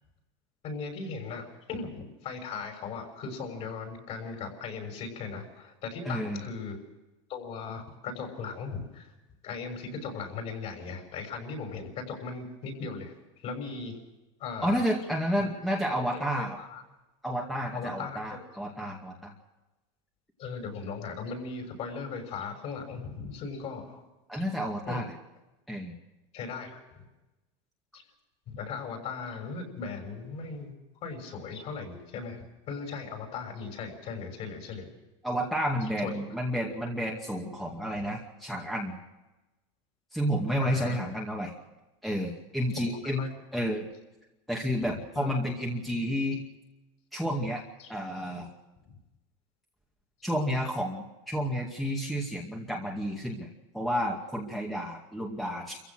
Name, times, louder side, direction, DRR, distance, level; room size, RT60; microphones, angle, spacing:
voice 1, 0.6-6.8 7.3-9.1 9.4-14.0 14.4-14.9 15.4-15.5 16.1-16.8 17.7-18.5 20.4-24.0 24.3-24.4 24.8-25.0 26.3-27.0 27.9-28.0 28.5-30.7 31.0-34.9 36.0-36.2 40.6-41.3 42.7-42.9 43.2-43.3 44.8-45.3 47.8-47.9 48.8-49.0 50.2-50.3, left 5 dB, 40° left, 4 dB, 6.4 m, -38 dB
voice 2, 6.1-6.4 14.6-16.6 17.2-19.3 24.3-25.0 25.7-26.0 35.2-39.0 40.1-41.5 42.0-43.9 44.5-46.4 47.1-47.6 47.9-48.5 50.2-53.5 53.7-55.8, equal, ahead, -1 dB, 2.2 m, -31 dB
27.5 x 15.5 x 6.4 m, 1.0 s
supercardioid pair, 145°, 16 cm